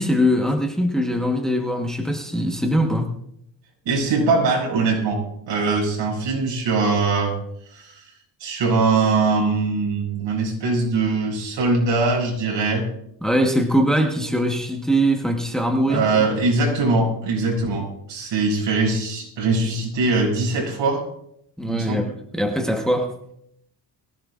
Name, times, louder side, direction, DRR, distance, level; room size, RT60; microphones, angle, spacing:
voice 1, 0.0-3.1 13.2-16.3 21.6-23.2, equal, ahead, 3 dB, 1.2 m, -22 dB
voice 2, 3.8-5.2 5.5-7.3 7.7-8.0 8.4-12.8 15.9-21.0 21.7-22.0, right 3 dB, 80° right, -1 dB, 6.8 m, -21 dB
22.5 x 16.0 x 2.5 m, 0.73 s
cardioid pair, 145°, 44 cm